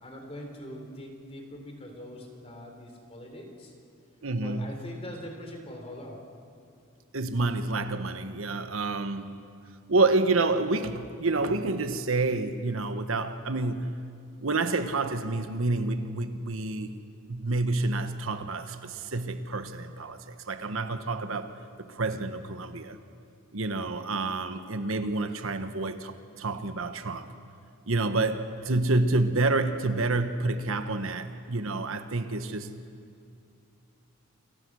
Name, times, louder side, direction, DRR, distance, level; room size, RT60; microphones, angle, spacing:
voice 1, 0.0-3.7 4.4-6.2, equal, 30° left, 3 dB, 3.8 m, -42 dB
voice 2, 4.2-4.8 7.1-9.4 9.9-14.0 14.4-16.9 17.3-23.0 23.5-27.3 27.9-32.7, right 3 dB, 70° right, 9 dB, 1.3 m, -28 dB
28.5 x 23.5 x 6.4 m, 2.4 s
head